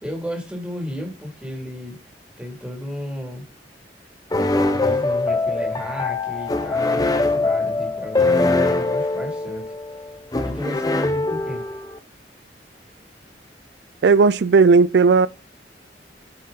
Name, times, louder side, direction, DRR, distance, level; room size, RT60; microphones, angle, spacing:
voice 1, 0.0-2.0 2.4-3.4 4.7-9.6 10.4-11.7, equal, 5° right, 2.6 m, -33 dB
sound 1, 4.3-12.0, left 3 dB, 20° left, 0.9 m, -22 dB
voice 2, 14.0-15.3, right 4 dB, 70° right, 0.4 m, -14 dB
9.3 x 5.3 x 3.9 m
head